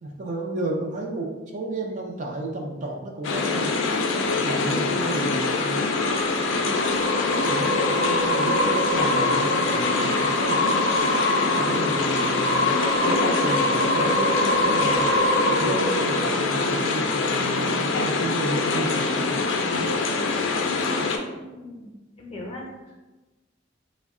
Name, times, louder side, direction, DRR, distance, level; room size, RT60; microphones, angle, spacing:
voice 1, 0.0-3.7 4.1-11.0 11.4-20.1, right 1 dB, 40° right, 1 dB, 0.5 m, -33 dB
sound 1, 3.2-21.2, left 3 dB, 75° left, 0.4 m, -24 dB
sound 2, 5.0-17.5, equal, 70° right, 0.8 m, -26 dB
voice 2, 21.3-21.9 22.2-23.0, left 1 dB, 30° left, -1 dB, 0.7 m, -39 dB
3.4 x 2.1 x 3.6 m, 1.1 s
head